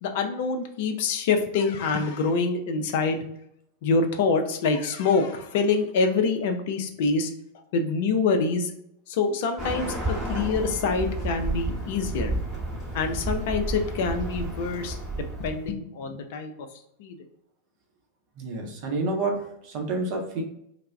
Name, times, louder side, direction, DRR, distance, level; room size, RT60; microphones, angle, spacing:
voice 1, 0.0-3.2 3.8-7.3 7.7-8.7 9.1-12.4 12.9-16.7 17.0-17.2, left 4 dB, 50° left, 6 dB, 0.4 m, -26 dB
Bird, 9.6-15.7, right 1 dB, 15° right, 0.9 m, -31 dB
voice 2, 18.4-20.4, right 3 dB, 45° right, 1 dB, 0.6 m, -29 dB
2.2 x 2.0 x 3.3 m, 0.75 s
figure-of-eight pair, 90°, 0 cm